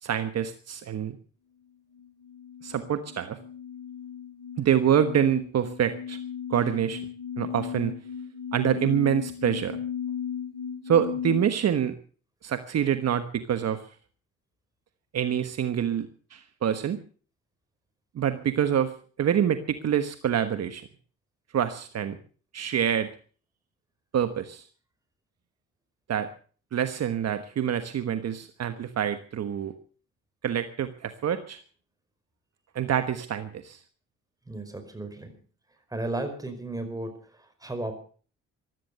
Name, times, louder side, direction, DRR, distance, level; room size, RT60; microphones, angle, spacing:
voice 1, 0.0-1.2 2.6-3.4 4.6-6.2 6.5-7.0 7.4-7.9 8.5-9.8 10.9-12.0 12.4-13.9 15.1-17.0 18.1-20.9 21.5-22.2 22.5-23.1 24.1-24.6 26.1-26.3 26.7-29.7 30.4-31.6 32.7-33.8, right 9 dB, 55° right, 9 dB, 1.3 m, -26 dB
sound 1, 1.9-11.4, left 8 dB, 50° left, 7.5 m, -36 dB
voice 2, 34.5-35.3 35.9-38.0, right 2 dB, 10° right, 7 dB, 5.0 m, -34 dB
15.5 x 12.5 x 6.6 m, 0.42 s
cardioid pair, 90°, 30 cm